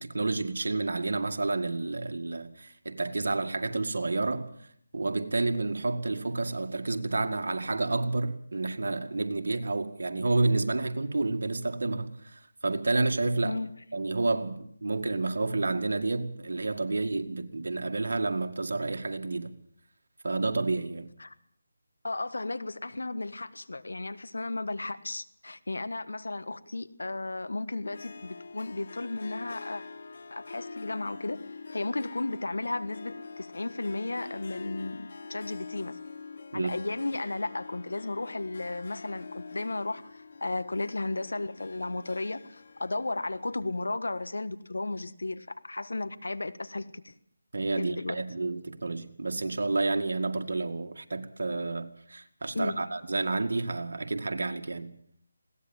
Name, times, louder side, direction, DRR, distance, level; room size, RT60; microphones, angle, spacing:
voice 1, 0.0-4.5 4.9-13.6 13.9-19.5 20.2-21.1 36.5-36.7 47.5-54.9, right 3 dB, 70° right, 2.1 m, -30 dB
voice 2, 22.0-29.8 30.3-31.4 31.7-36.0 36.5-47.2 47.7-48.2 52.5-52.8, left 2 dB, 80° left, 1.5 m, -34 dB
Harp, 27.8-44.3, left 4 dB, 55° left, 1.4 m, -45 dB
20.5 x 17.0 x 7.3 m
figure-of-eight pair, 165°, 0 cm